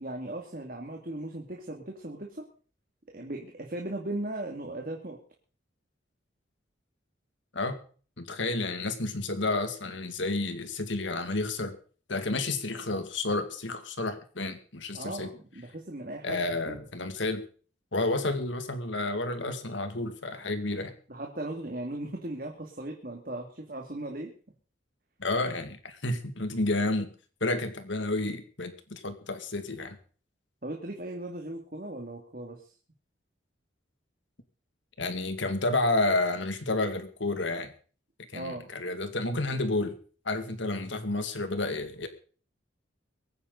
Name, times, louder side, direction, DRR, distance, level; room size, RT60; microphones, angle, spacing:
voice 1, 0.0-2.5 3.1-5.2 14.9-16.8 21.1-24.3 30.6-32.7 38.3-38.7, right 1 dB, 45° right, 1 dB, 2.5 m, -37 dB
voice 2, 8.2-11.8 12.1-15.3 16.2-17.4 17.9-20.9 25.2-27.1 27.4-30.0 35.0-37.7 38.3-40.0 40.2-42.1, left 2 dB, 75° left, 8 dB, 2.4 m, -30 dB
24.0 x 9.6 x 4.0 m, 0.41 s
head